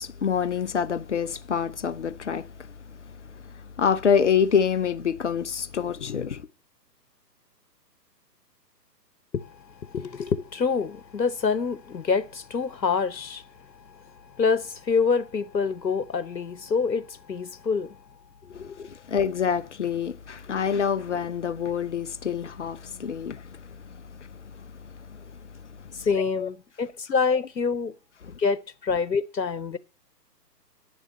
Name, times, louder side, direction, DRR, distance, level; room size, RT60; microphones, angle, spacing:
voice 1, 0.0-2.7 3.8-6.4 18.5-24.3 25.1-25.2 26.4-26.5, left 7 dB, 45° left, 0.6 m, -26 dB
voice 2, 9.3-18.0 18.4-18.9 20.5-20.6 25.9-27.9 28.4-29.8, left 5 dB, 90° left, 0.8 m, -27 dB
10.0 x 7.2 x 6.8 m
figure-of-eight pair, 135°, 50 cm